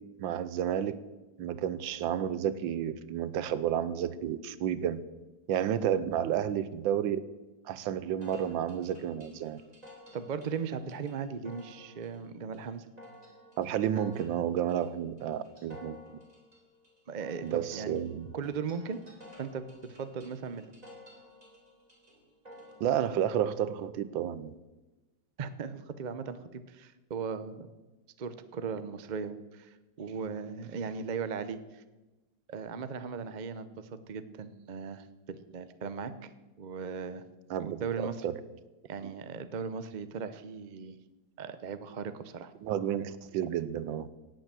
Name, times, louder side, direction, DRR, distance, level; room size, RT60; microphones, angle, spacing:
voice 1, 0.2-1.0 1.4-5.0 5.5-7.2 7.6-9.6 13.6-16.0 17.4-18.3 22.8-24.5 37.5-38.4 39.0-39.1 42.6-44.1, right 10 dB, 80° right, 15 dB, 1.5 m, -31 dB
sound 1, 8.2-23.2, equal, 20° right, 3.1 m, -54 dB
voice 2, 10.1-12.9 17.1-17.9 18.3-19.0 19.4-20.7 25.4-27.7 28.2-31.8 32.5-36.3 36.6-37.2 37.6-38.3 38.8-41.0 41.4-42.5, right 6 dB, 55° right, 12 dB, 0.5 m, -38 dB
18.0 x 8.0 x 7.6 m, 1.1 s
omnidirectional pair, 2.1 m